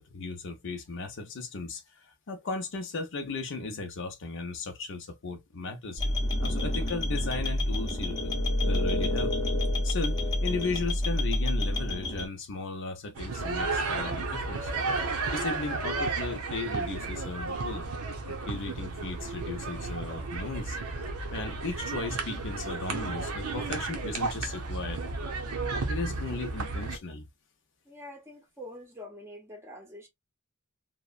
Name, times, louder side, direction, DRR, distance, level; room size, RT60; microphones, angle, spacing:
voice 1, 0.0-8.4 8.6-9.3 9.8-14.7 15.3-17.9 18.2-20.8 21.3-25.0 25.9-27.2, left 3 dB, 60° left, 0.6 m, -36 dB
sound 1, 6.0-12.3, left 1 dB, 20° left, 0.7 m, -28 dB
sound 2, 13.1-27.0, right 3 dB, 80° right, 0.7 m, -33 dB
voice 2, 27.9-30.1, left 1 dB, 10° right, 0.7 m, -45 dB
2.9 x 2.1 x 2.3 m
head